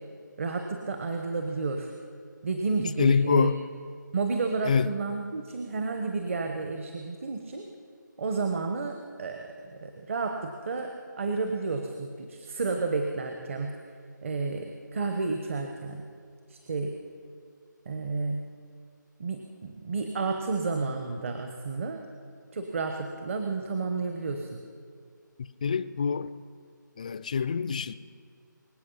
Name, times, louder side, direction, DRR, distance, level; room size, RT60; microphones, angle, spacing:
voice 1, 0.4-1.9 2.4-3.5 4.1-7.7 8.2-13.8 14.2-16.0 16.5-16.9 17.8-18.5 19.2-22.0 22.5-24.6, right 4 dB, 40° right, 1.1 m, -31 dB
voice 2, 3.0-3.6 4.6-4.9 25.4-26.3 27.0-28.0, left 6 dB, 20° left, 0.3 m, -25 dB
24.0 x 8.2 x 5.6 m
figure-of-eight pair, 160°, 11 cm